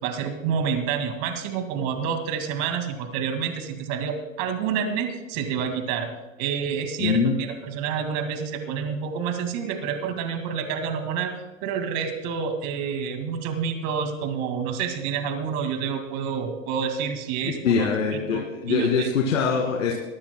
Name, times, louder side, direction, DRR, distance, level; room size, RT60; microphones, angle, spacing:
voice 1, 0.0-6.1 6.4-11.3 11.6-17.9 18.3-18.4 18.7-19.1, right 7 dB, 50° right, 6 dB, 2.2 m, -28 dB
voice 2, 7.0-7.4 17.4-19.9, left 6 dB, 85° left, 0 dB, 2.2 m, -23 dB
23.5 x 15.5 x 2.2 m, 1.1 s
hypercardioid pair, 115°, 38 cm